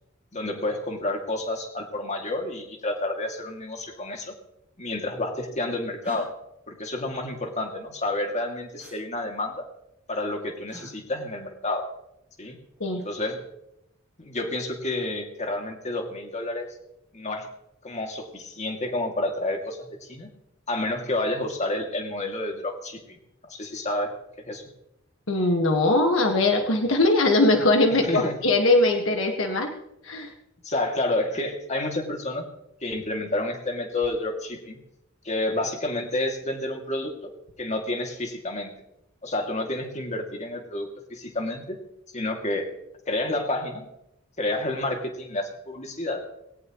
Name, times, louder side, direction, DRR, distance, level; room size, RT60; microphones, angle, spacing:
voice 1, 0.3-4.3 4.8-6.3 6.7-9.7 10.1-11.9 12.4-12.6 13.0-13.4 14.2-16.7 17.1-17.5 17.8-20.3 20.7-23.2 23.5-24.1 24.4-24.6 28.0-28.4 30.6-32.5 32.8-34.8 35.2-37.3 37.6-38.7 39.2-41.8 42.1-42.7 43.1-43.8 44.4-46.2, left 2 dB, 35° left, 3 dB, 2.6 m, -29 dB
sound 1, 6.0-6.2 8.8-9.0 10.7-10.9 12.7-13.1, equal, 5° right, 7.1 m, -43 dB
voice 2, 25.3-29.7 30.0-30.3, left 2 dB, 65° left, 3 dB, 1.8 m, -21 dB
20.0 x 18.0 x 3.2 m, 0.81 s
head